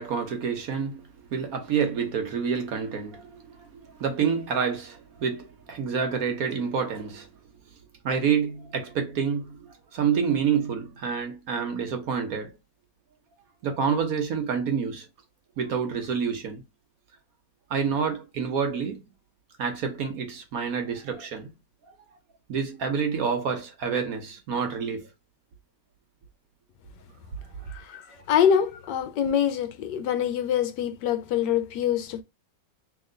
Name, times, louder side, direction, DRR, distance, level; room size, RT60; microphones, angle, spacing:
voice 1, 0.0-7.3 8.0-12.6 13.6-15.1 15.6-16.6 17.7-19.0 19.6-21.5 22.5-25.1 27.6-27.7, right 6 dB, 60° right, 1.1 m, -28 dB
voice 2, 27.7-32.2, left 9 dB, 75° left, 1.2 m, -25 dB
3.1 x 2.9 x 3.7 m
omnidirectional pair, 1.9 m